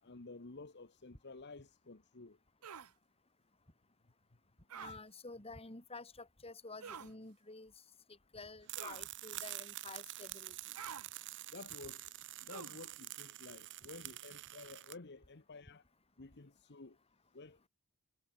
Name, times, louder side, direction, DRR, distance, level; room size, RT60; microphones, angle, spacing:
voice 1, 0.0-2.4 11.5-15.8 16.2-17.0 17.3-17.7, left 3 dB, 50° left, 1.2 m, -52 dB
sound 1, 2.6-2.9 4.7-5.0 6.8-7.1 8.8-9.1 10.7-11.1 12.5-12.8, right 7 dB, 80° right, 0.9 m, -48 dB
voice 2, 4.7-7.7 8.1-10.6, left 3 dB, 25° left, 3.5 m, -50 dB
sound 2, 8.7-15.0, right 16 dB, 55° right, 0.7 m, -47 dB
head